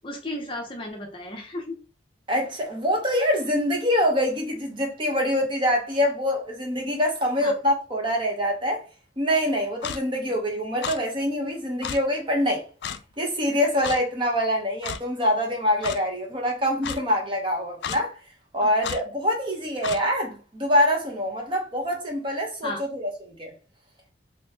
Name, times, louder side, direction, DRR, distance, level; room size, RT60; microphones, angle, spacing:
voice 1, 0.0-1.8 7.4-7.5 10.3-10.4 18.6-18.7 22.6-22.8, left 1 dB, 30° left, 0.6 m, -34 dB
voice 2, 2.3-8.8 9.2-12.6 13.2-18.2 18.5-23.5, equal, 30° right, 1.0 m, -25 dB
Clock, 9.8-10.0 10.8-11.0 11.8-12.0 12.8-13.0 13.8-14.0 14.8-15.0 15.8-16.0 16.8-17.0 17.8-18.0 18.8-19.0 19.8-20.0, left 7 dB, 70° left, 0.3 m, -31 dB
3.0 x 3.0 x 3.4 m
head